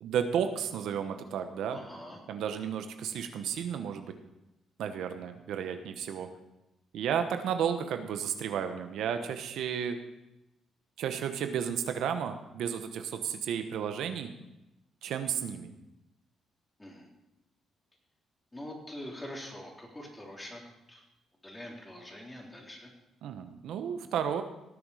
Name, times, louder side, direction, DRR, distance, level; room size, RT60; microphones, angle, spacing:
voice 1, 0.0-1.8 2.3-4.1 4.8-6.3 6.9-10.0 11.0-14.3 15.0-15.7 23.2-24.4, right 8 dB, 80° right, 7 dB, 1.0 m, -33 dB
voice 2, 1.7-2.2 16.8-17.1 18.5-20.6 20.9-21.0 21.4-22.9, left 1 dB, 15° left, -1 dB, 3.6 m, -44 dB
18.0 x 7.2 x 4.9 m, 0.93 s
cardioid pair, 90°, 0 cm